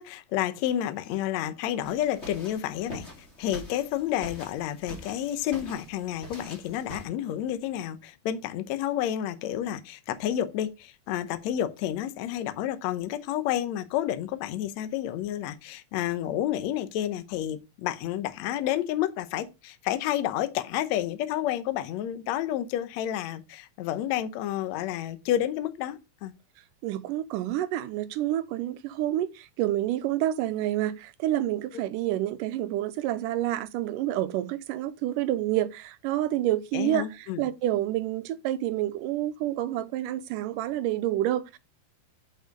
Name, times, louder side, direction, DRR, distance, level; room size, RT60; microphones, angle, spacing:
voice 1, 0.0-3.1 3.4-26.3 36.7-37.4, left 11 dB, 70° left, 1.8 m, -30 dB
sound 1, 1.8-7.0, equal, 25° left, 2.1 m, -44 dB
voice 2, 26.8-41.6, right 13 dB, 85° right, 2.2 m, -28 dB
6.7 x 5.6 x 5.2 m
omnidirectional pair, 3.9 m